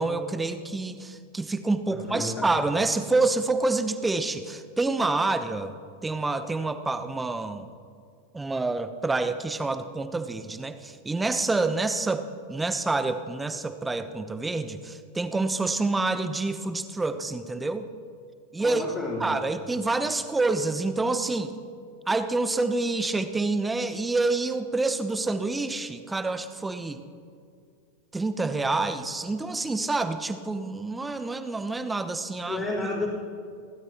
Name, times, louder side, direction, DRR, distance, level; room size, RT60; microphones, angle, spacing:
voice 1, 0.0-5.7 6.0-7.7 8.3-17.9 18.5-18.8 19.2-21.5 22.1-27.0 28.1-32.6, right 3 dB, 10° right, 10 dB, 0.9 m, -27 dB
voice 2, 2.1-2.5 18.6-19.3 32.5-33.1, left 2 dB, 25° left, -9 dB, 3.9 m, -31 dB
29.0 x 12.5 x 3.0 m, 2.2 s
figure-of-eight pair, 90°, 0 cm